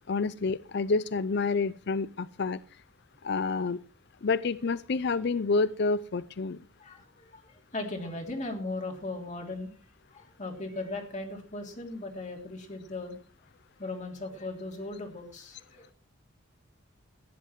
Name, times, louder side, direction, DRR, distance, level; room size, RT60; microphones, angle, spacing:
voice 1, 0.1-2.6 3.2-3.8 4.2-6.6, left 4 dB, 55° left, 17 dB, 0.5 m, -28 dB
voice 2, 6.8-9.7 10.1-13.2 13.8-15.9, left 2 dB, 40° left, 2 dB, 3.3 m, -38 dB
15.5 x 11.0 x 4.5 m, 0.37 s
head